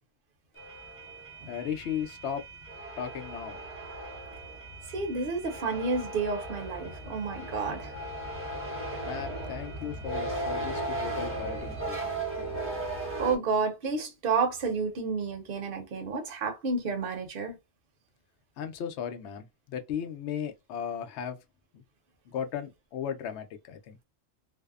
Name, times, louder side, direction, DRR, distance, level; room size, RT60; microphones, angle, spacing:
sound 1, 0.6-13.4, right 2 dB, 15° right, 0.7 m, -37 dB
voice 1, 1.5-2.4 3.0-3.6 9.0-12.2 18.6-21.4 21.7-21.8 22.3-24.0, left 8 dB, 75° left, 0.8 m, -36 dB
voice 2, 4.9-7.9 13.2-17.6, right 4 dB, 55° right, 0.9 m, -30 dB
2.6 x 2.0 x 2.3 m
omnidirectional pair, 1.2 m